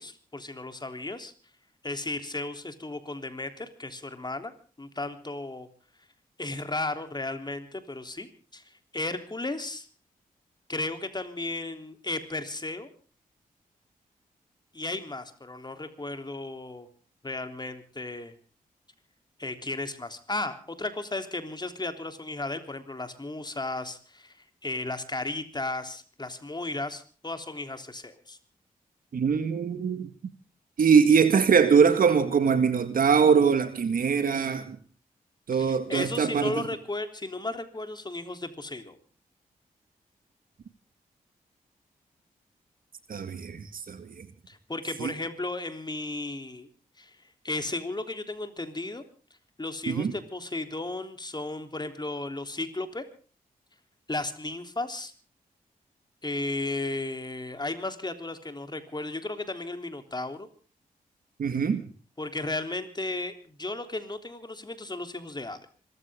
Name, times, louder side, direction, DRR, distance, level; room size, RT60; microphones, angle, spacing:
voice 1, 0.0-1.3 1.8-4.5 4.8-5.7 6.4-8.3 8.5-9.9 10.7-12.9 14.7-16.9 17.2-18.3 19.4-24.4 24.6-28.4 35.5-39.0 43.1-43.2 44.5-46.7 47.0-47.2 47.4-49.0 49.6-53.0 54.1-55.1 56.2-60.5 62.2-65.7, left 2 dB, 30° left, 7 dB, 3.4 m, -34 dB
voice 2, 29.1-30.1 30.8-34.8 35.5-36.6 43.1-44.3 45.0-45.1 49.9-50.1 61.4-61.8, right 6 dB, 70° right, 10 dB, 1.8 m, -22 dB
26.0 x 14.5 x 3.7 m, 0.39 s
cardioid pair, 50°, 15 cm